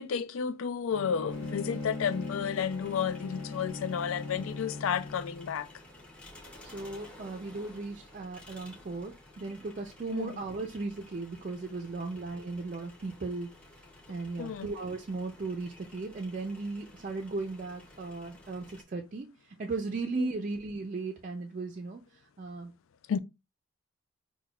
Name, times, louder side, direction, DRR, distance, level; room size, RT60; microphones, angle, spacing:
voice 1, 0.0-5.7 10.1-10.4 14.4-14.7 20.2-20.3 23.1-23.2, left 7 dB, 85° left, 0.4 m, -32 dB
Bowed string instrument, 0.9-5.6, left 3 dB, 60° left, 0.9 m, -40 dB
sound 1, 1.3-18.8, left 1 dB, 5° left, 0.6 m, -53 dB
voice 2, 6.6-13.5 14.1-19.3 19.6-22.0 22.4-22.7, right 3 dB, 40° right, 0.4 m, -36 dB
5.8 x 2.2 x 2.3 m
head